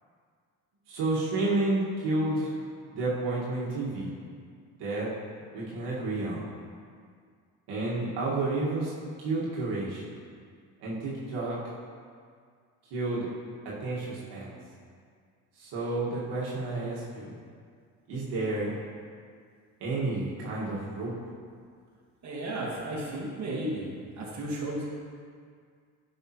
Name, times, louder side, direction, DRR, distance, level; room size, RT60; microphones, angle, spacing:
voice 1, 0.9-2.5 2.9-4.1 4.8-5.1 5.5-6.4 7.7-8.9 9.2-10.1 10.8-11.6 12.9-13.3 13.6-14.6 15.6-17.4 18.1-18.8 19.8-21.1, right 2 dB, 70° right, -6 dB, 1.8 m, -30 dB
voice 2, 22.2-23.9 24.2-24.9, right 1 dB, 40° right, -4 dB, 1.9 m, -33 dB
9.0 x 5.8 x 3.0 m, 2.1 s
supercardioid pair, 75°, 42 cm